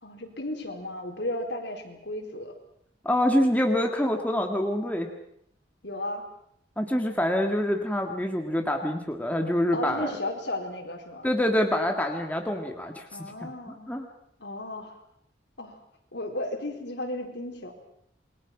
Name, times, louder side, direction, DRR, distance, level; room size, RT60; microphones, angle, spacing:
voice 1, 0.0-2.5 5.8-6.3 9.7-11.3 13.1-13.9 14.4-15.0 15.6-15.8 16.1-17.7, left 1 dB, 65° left, 3 dB, 4.5 m, -34 dB
voice 2, 3.0-5.1 6.8-10.2 11.2-13.1 13.4-13.5 13.9-14.1, left 1 dB, 10° left, 3 dB, 2.0 m, -26 dB
28.0 x 22.5 x 6.1 m, 0.69 s
head